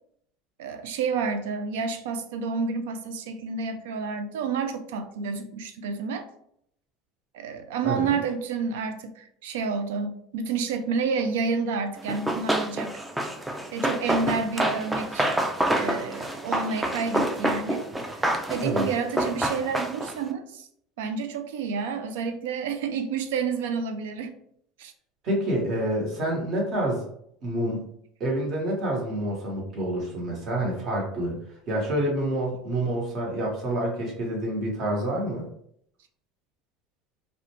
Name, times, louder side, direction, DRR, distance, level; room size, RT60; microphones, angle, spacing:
voice 1, 0.6-6.3 7.3-13.0 13.7-15.3 15.8-20.7 21.0-24.3 24.8-24.9, right 5 dB, 90° right, 8 dB, 0.3 m, -30 dB
Run, 12.1-20.2, right 1 dB, 10° right, 0.3 m, -27 dB
voice 2, 25.2-27.0 27.4-27.8 28.2-31.4 31.7-35.5, right 1 dB, 45° right, -2 dB, 1.1 m, -27 dB
2.4 x 2.1 x 2.9 m, 0.69 s
supercardioid pair, 125°, 0 cm